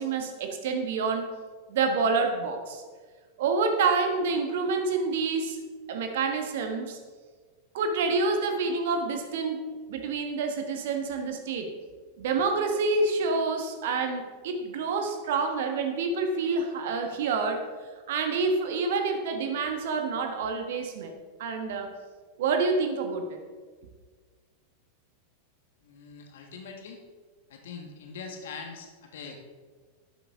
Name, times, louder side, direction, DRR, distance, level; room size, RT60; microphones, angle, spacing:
voice 1, 0.0-1.3 1.7-2.8 3.4-5.6 5.9-7.0 7.7-11.7 12.2-17.6 18.1-21.1 21.4-21.9 22.4-23.4, right 4 dB, 55° right, 5 dB, 1.5 m, -28 dB
voice 2, 25.8-27.0 27.5-29.4, left 5 dB, 60° left, 3 dB, 1.7 m, -42 dB
11.5 x 11.0 x 3.7 m, 1.5 s
figure-of-eight pair, 90°, 0 cm